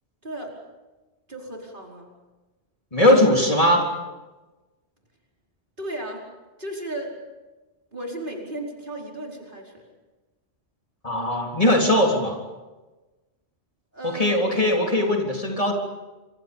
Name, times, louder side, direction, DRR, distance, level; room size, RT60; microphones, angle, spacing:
voice 1, 0.2-0.5 1.3-2.1 5.8-6.2 6.6-7.1 7.9-9.8 13.9-14.5, right 1 dB, 50° right, -1 dB, 5.1 m, -34 dB
voice 2, 2.9-3.9 11.0-12.4 14.0-15.7, left 1 dB, 30° left, 0 dB, 3.8 m, -20 dB
27.5 x 27.0 x 5.4 m, 1.2 s
omnidirectional pair, 1.1 m